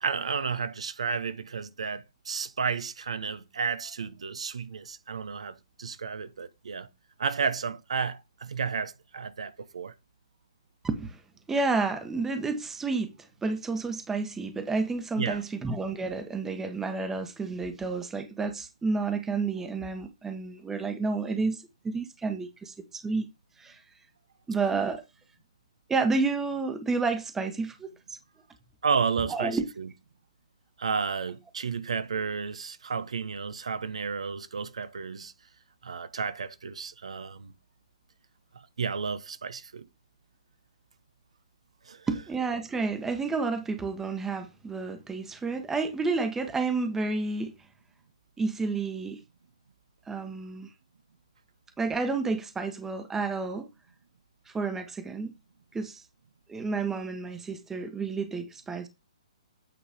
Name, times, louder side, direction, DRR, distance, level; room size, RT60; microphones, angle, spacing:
voice 1, 0.0-6.9 7.2-9.9 15.2-15.4 28.8-29.9 30.8-35.3 35.8-37.5 38.8-39.8 41.9-42.0, right 5 dB, 70° right, 1.0 m, -32 dB
voice 2, 10.8-11.2 11.5-13.1 13.4-23.3 23.6-23.8 24.5-25.0 25.9-27.9 29.3-29.6 42.1-47.6 48.4-49.2 50.1-50.7 51.8-53.7 54.5-55.3 55.7-56.0 56.5-58.9, right 4 dB, 10° right, 1.2 m, -30 dB
9.0 x 4.0 x 5.1 m
figure-of-eight pair, 130°, 3 cm